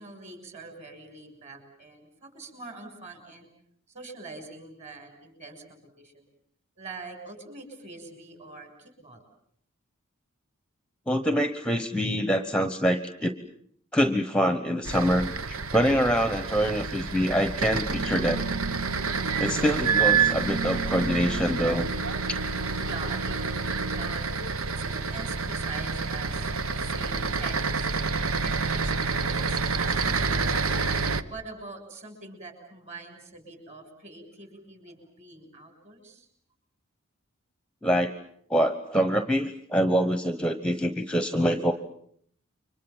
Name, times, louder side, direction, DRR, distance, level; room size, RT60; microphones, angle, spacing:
voice 1, 0.0-3.5 3.9-6.3 6.8-9.3 22.9-24.3 24.7-26.5 26.8-27.9 28.4-36.3, right 3 dB, 35° right, 5 dB, 7.0 m, -44 dB
voice 2, 11.1-13.3 13.9-18.4 19.4-21.9 37.8-38.1 38.5-41.7, equal, 5° left, 10 dB, 1.1 m, -25 dB
sound 1, 14.9-31.2, right 5 dB, 80° right, 1.3 m, -28 dB
sound 2, 17.9-24.1, right 3 dB, 50° right, 1.1 m, -35 dB
30.0 x 24.5 x 7.3 m, 0.65 s
head